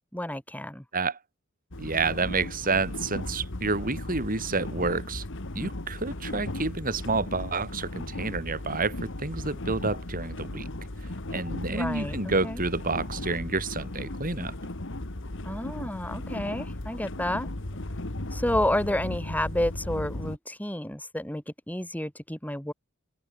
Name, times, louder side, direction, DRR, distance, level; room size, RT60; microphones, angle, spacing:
voice 1, 0.1-0.8 11.6-12.6 15.4-17.5 18.3-22.7, left 1 dB, 5° left, 4.0 m, -30 dB
sound 1, 1.7-20.4, left 1 dB, 60° left, 2.0 m, -36 dB
voice 2, 1.8-5.3 5.6-10.7 11.3-14.5, right 3 dB, 40° right, 3.5 m, -29 dB
open air
head